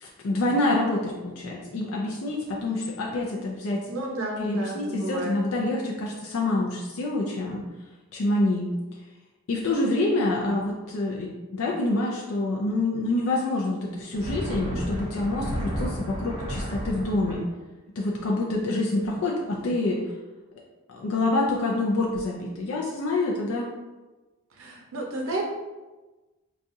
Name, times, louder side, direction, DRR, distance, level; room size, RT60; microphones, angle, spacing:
voice 1, 0.0-3.8 4.4-7.6 8.1-8.7 9.5-17.5 18.0-20.0 20.9-23.7, left 2 dB, 65° left, -2 dB, 0.4 m, -27 dB
voice 2, 3.9-5.4 24.6-25.4, right 1 dB, 65° right, -1 dB, 0.7 m, -32 dB
sound 1, 14.0-17.3, equal, 20° right, 0.6 m, -32 dB
4.0 x 2.3 x 2.6 m, 1.2 s
head